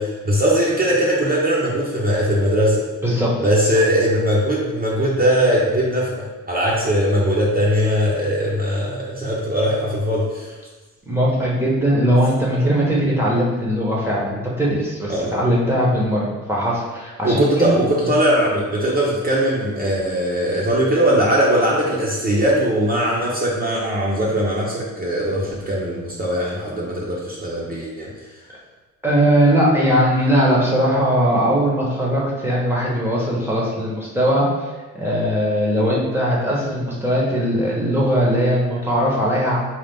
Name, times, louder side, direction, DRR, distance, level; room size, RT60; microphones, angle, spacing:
voice 1, 0.0-2.8 3.4-10.5 15.1-15.4 17.2-28.1, equal, 30° right, -5 dB, 0.8 m, -20 dB
voice 2, 3.0-3.3 3.6-3.7 11.1-18.1 29.0-34.7 34.9-39.6, equal, 10° right, -5 dB, 1.0 m, -19 dB
4.0 x 2.4 x 3.6 m, 1.2 s
cardioid pair, 90°, 30 cm